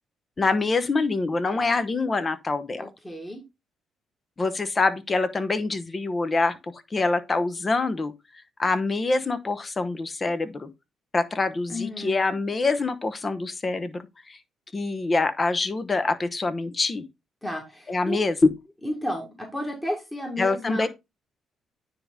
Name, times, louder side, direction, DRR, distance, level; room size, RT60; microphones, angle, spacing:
voice 1, 0.4-2.9 4.4-8.1 8.6-10.7 11.1-14.4 14.7-17.0 17.9-18.5 20.4-20.9, left 3 dB, 30° left, 1.0 m, -25 dB
voice 2, 2.8-3.4 11.7-12.2 17.4-18.2 18.8-20.9, left 1 dB, 10° left, 2.0 m, -32 dB
9.7 x 3.6 x 3.8 m
cardioid pair, 90°, 0 cm